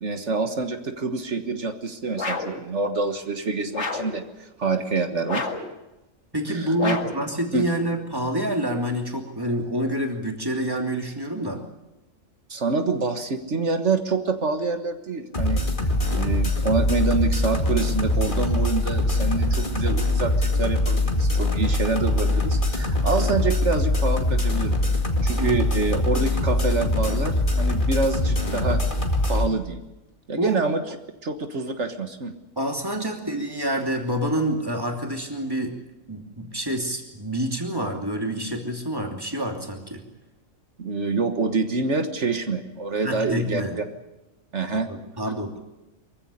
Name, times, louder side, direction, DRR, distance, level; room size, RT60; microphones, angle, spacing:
voice 1, 0.0-5.5 6.5-7.0 7.5-7.7 12.5-15.6 16.1-24.8 25.2-28.8 29.3-29.8 30.3-31.0 31.2-32.3 40.8-43.8 44.5-44.9, right 4 dB, 60° right, 7 dB, 1.8 m, -26 dB
sound 1, 2.2-2.6 3.7-4.2 5.3-5.7 6.8-7.3, left 3 dB, 60° left, 2.3 m, -29 dB
voice 2, 6.3-11.6 25.4-25.6 30.4-30.6 32.6-35.7 36.1-40.0 43.0-43.8 44.9-45.6, equal, 15° right, 3 dB, 2.8 m, -27 dB
sound 2, 15.3-29.5, left 2 dB, 40° left, 2.5 m, -23 dB
23.5 x 15.5 x 9.9 m, 0.99 s
omnidirectional pair, 1.3 m